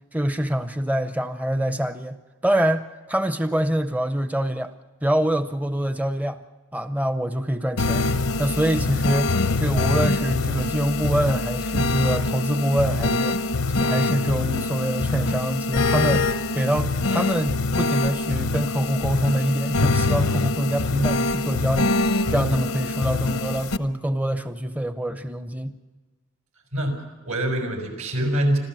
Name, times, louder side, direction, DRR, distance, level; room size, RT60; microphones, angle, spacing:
voice 1, 0.1-2.2 2.4-4.7 5.0-6.4 6.7-13.4 13.7-22.0 22.3-25.7, right 1 dB, 5° right, 10 dB, 0.5 m, -25 dB
sound 1, 7.8-23.8, left 2 dB, 85° left, 0.8 m, -24 dB
voice 2, 26.7-28.6, right 1 dB, 85° right, 4 dB, 5.5 m, -25 dB
26.0 x 14.5 x 7.4 m, 1.3 s
head